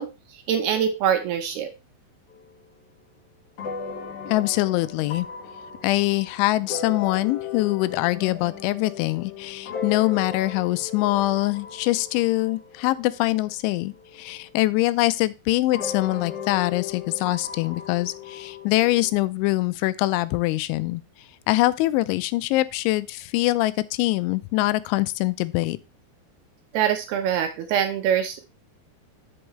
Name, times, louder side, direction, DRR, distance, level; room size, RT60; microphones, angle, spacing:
voice 1, 0.0-1.7 26.7-28.4, right 9 dB, 75° right, 2.5 m, -24 dB
sound 1, 2.3-2.4 3.6-13.5 14.2-14.3 15.7-19.1, left 6 dB, 50° left, 1.9 m, -36 dB
voice 2, 4.3-5.3 5.8-21.0 21.5-25.8, left 18 dB, 90° left, 3.0 m, -23 dB
8.0 x 8.0 x 3.1 m
omnidirectional pair, 5.3 m